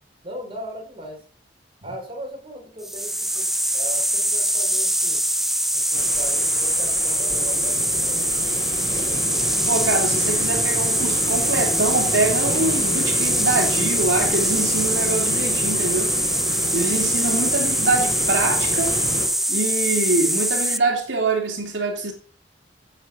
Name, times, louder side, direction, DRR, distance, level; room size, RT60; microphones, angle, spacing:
voice 1, 0.2-1.2 1.8-5.2 5.7-8.3 17.2-17.4, right 1 dB, 30° right, 5.7 m, -38 dB
sound 1, 2.8-20.8, right 1 dB, ahead, 0.8 m, -23 dB
sound 2, 5.9-19.3, left 1 dB, 25° left, 5.2 m, -31 dB
voice 2, 9.7-16.1 16.7-19.0 19.5-22.1, right 2 dB, 80° right, 3.2 m, -24 dB
15.5 x 8.1 x 6.3 m
head